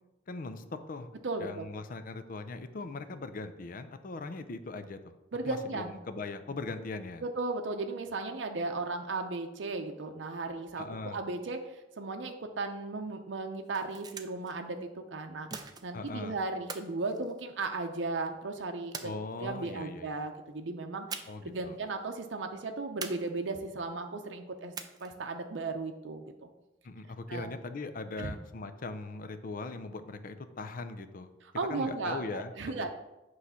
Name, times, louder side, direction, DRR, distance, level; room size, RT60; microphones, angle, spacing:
voice 1, 0.3-1.1 1.4-5.1 5.4-7.2 10.8-11.2 15.9-16.4 19.0-20.2 21.3-21.8 26.8-31.3 31.7-32.5, left 3 dB, 50° left, 10 dB, 0.5 m, -40 dB
voice 2, 1.2-1.7 5.3-6.0 7.2-19.1 19.4-24.7 25.0-26.5 27.3-27.5 28.2-28.3 31.5-32.9, right 3 dB, 80° right, 5 dB, 0.6 m, -36 dB
sound 1, 13.5-14.5 15.5-16.1 16.7-17.9 18.9-19.7 21.1-21.6 21.8-21.9 23.0-23.7 24.7-25.3, right 5 dB, 20° right, 0.4 m, -43 dB
8.2 x 3.2 x 5.6 m, 1.0 s
head